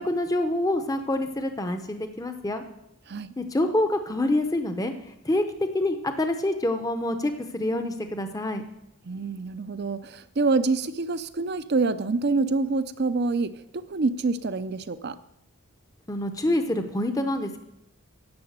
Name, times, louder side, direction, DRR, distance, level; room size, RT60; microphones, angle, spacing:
voice 1, 0.0-2.6 3.4-4.9 5.2-5.4 5.7-8.6 16.1-17.6, left 1 dB, 15° left, 7 dB, 0.7 m, -26 dB
voice 2, 9.0-15.2, right 3 dB, 50° right, 13 dB, 0.5 m, -26 dB
10.5 x 7.0 x 8.0 m, 0.83 s
head